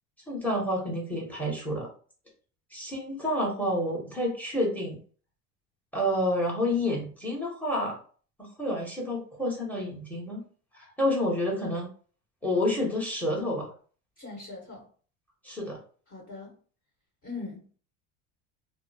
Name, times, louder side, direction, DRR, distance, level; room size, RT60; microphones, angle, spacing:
voice 1, 0.3-1.9 2.7-5.0 5.9-8.0 8.4-10.4 10.7-11.9 12.4-13.7 15.4-15.8, left 1 dB, 5° left, -1 dB, 1.1 m, -29 dB
voice 2, 14.2-14.8 16.1-16.5 17.2-17.6, left 3 dB, 35° left, -2 dB, 1.4 m, -40 dB
2.7 x 2.0 x 2.7 m, 0.41 s
supercardioid pair, 95°, 36 cm